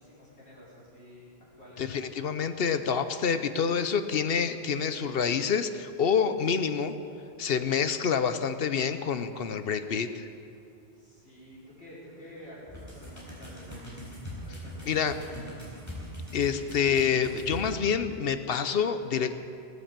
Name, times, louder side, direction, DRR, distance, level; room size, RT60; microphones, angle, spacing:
voice 1, 0.0-1.9 10.9-14.0 14.4-15.7, equal, 85° left, -7 dB, 5.0 m, -50 dB
voice 2, 1.8-6.9 7.4-10.3 14.9-15.1 16.3-19.4, left 6 dB, 65° left, 10 dB, 0.9 m, -27 dB
sound 1, 12.7-17.7, equal, 15° left, 4.4 m, -41 dB
19.5 x 8.4 x 7.4 m, 2.6 s
omnidirectional pair, 1.1 m